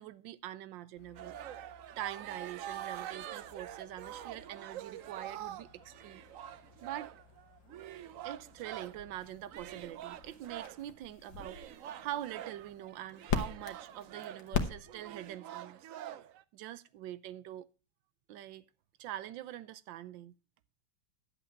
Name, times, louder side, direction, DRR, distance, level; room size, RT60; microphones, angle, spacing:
voice 1, 0.0-1.4 2.0-7.1 8.2-15.8 16.5-17.7 18.3-18.6 19.0-20.3, right 13 dB, 75° right, 1.4 m, -44 dB
sound 1, 1.0-15.3, left 6 dB, 70° left, 1.9 m, -43 dB
sound 2, 1.1-9.1 9.5-10.9 11.4-16.4, right 11 dB, 90° right, 0.7 m, -46 dB
11.5 x 8.1 x 4.4 m
omnidirectional pair, 2.1 m